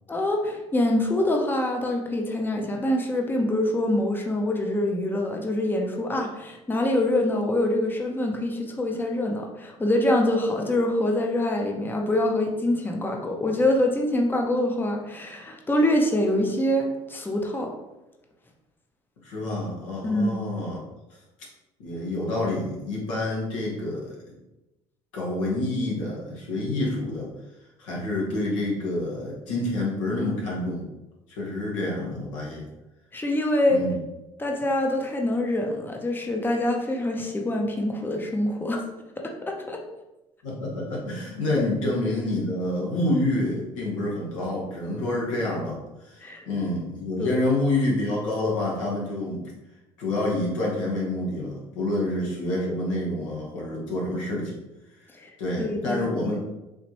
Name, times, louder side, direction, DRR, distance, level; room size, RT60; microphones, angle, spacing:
voice 1, 0.1-17.7 20.0-20.4 33.1-33.8 34.4-38.9 39.2-39.8 46.2-46.5 47.2-47.4 55.1-55.3 55.6-56.1, left 1 dB, 10° left, 2 dB, 0.7 m, -25 dB
voice 2, 19.2-20.8 21.8-24.2 25.1-27.3 27.8-30.8 31.3-32.7 33.7-34.0 40.4-49.4 50.0-54.5 55.4-56.5, left 1 dB, 80° left, -4 dB, 1.2 m, -28 dB
4.2 x 2.9 x 2.9 m, 1.0 s
hypercardioid pair, 65°, 16 cm